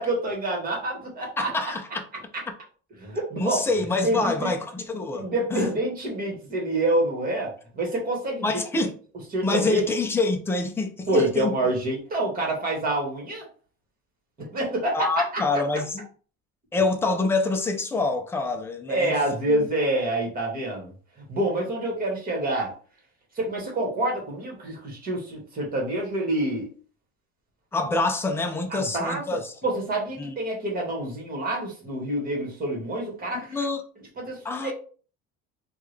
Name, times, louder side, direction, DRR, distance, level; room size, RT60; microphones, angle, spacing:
voice 1, 0.0-1.5 3.0-3.6 4.0-4.5 5.1-8.9 9.3-9.9 11.1-13.5 14.4-15.4 18.9-20.9 21.2-22.7 23.3-26.7 28.7-33.6 34.2-34.7, right 1 dB, 25° right, 1.4 m, -27 dB
voice 2, 1.4-2.0 3.4-5.7 8.4-8.9 9.4-11.5 14.9-16.0 16.7-19.1 19.5-19.7 27.7-29.5 30.2-30.3 33.3-33.8 34.4-34.7, left 3 dB, 10° left, 0.3 m, -26 dB
3.6 x 2.3 x 3.2 m
cardioid pair, 145°, 32 cm